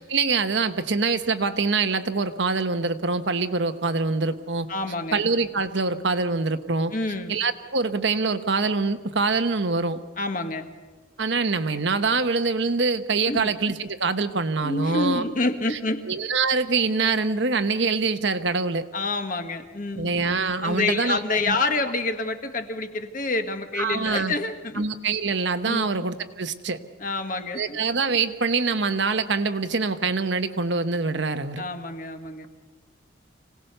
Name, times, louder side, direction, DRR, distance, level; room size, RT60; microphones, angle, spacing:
voice 1, 0.0-4.7 5.1-6.9 7.3-10.0 11.2-15.2 15.7-15.8 16.1-18.8 20.0-21.2 21.5-21.6 23.8-24.3 24.8-26.8 27.5-31.6, right 4 dB, 65° right, 9 dB, 1.1 m, -24 dB
voice 2, 4.7-5.2 6.9-7.3 10.2-10.7 13.3-13.5 14.6-16.0 18.9-20.1 20.6-24.8 25.7-25.9 27.0-27.8 31.6-32.5, left 3 dB, 40° left, 6 dB, 1.5 m, -27 dB
26.0 x 18.0 x 6.7 m, 1.3 s
head